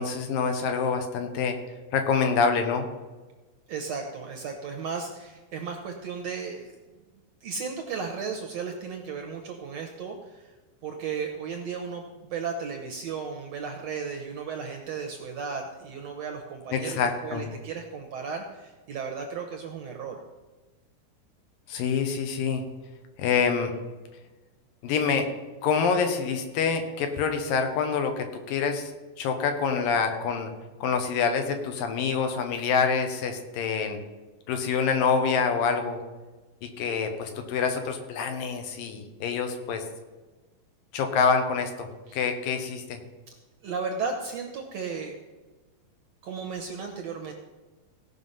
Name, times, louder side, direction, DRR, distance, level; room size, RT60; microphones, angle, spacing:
voice 1, 0.0-1.6 1.9-2.9 16.7-17.5 21.7-22.6 23.2-23.7 24.8-25.3 25.6-28.9 29.2-30.5 30.8-34.0 34.5-36.0 36.6-39.8 40.9-41.9 42.1-43.0, left 5 dB, 80° left, 6 dB, 2.9 m, -26 dB
voice 2, 3.7-6.7 7.4-10.5 10.8-20.2 42.1-42.2 43.6-45.2 46.2-47.3, right 5 dB, 65° right, 4 dB, 1.7 m, -35 dB
17.0 x 5.7 x 5.6 m, 1.2 s
omnidirectional pair, 4.0 m